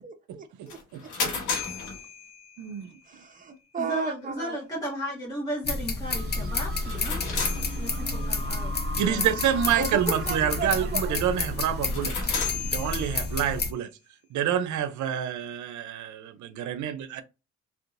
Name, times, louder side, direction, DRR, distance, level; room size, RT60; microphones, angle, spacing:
voice 1, 0.0-0.8 1.3-1.4 3.1-4.6 9.8-11.2, right 5 dB, 25° right, 0.9 m, -34 dB
sound 1, 0.7-2.9 6.7-8.4 11.8-13.6, left 5 dB, 85° left, 1.5 m, -34 dB
voice 2, 2.6-2.9 9.0-12.1 12.7-13.9 14.3-17.2, right 9 dB, 75° right, 0.6 m, -27 dB
voice 3, 3.8-7.2 7.8-8.7 9.0-9.4, equal, 10° left, 1.4 m, -35 dB
sound 2, 5.6-13.7, left 3 dB, 35° left, 0.8 m, -30 dB
sound 3, 6.1-13.1, right 2 dB, 45° right, 1.3 m, -41 dB
3.6 x 2.8 x 2.6 m
cardioid pair, 90°, 30 cm